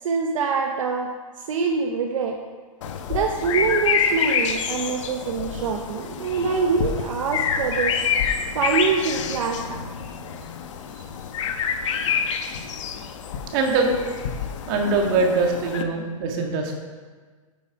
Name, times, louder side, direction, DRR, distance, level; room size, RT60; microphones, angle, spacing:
voice 1, 0.0-1.1 1.4-2.4 3.1-8.0 8.5-9.8, right 5 dB, 65° right, 3 dB, 1.0 m, -25 dB
sound 1, 2.8-15.8, left 7 dB, 60° left, 1.0 m, -27 dB
voice 2, 13.5-13.9 14.7-16.8, right 3 dB, 40° right, 1 dB, 1.8 m, -22 dB
9.2 x 6.9 x 4.7 m, 1.4 s
hypercardioid pair, 145°, 18 cm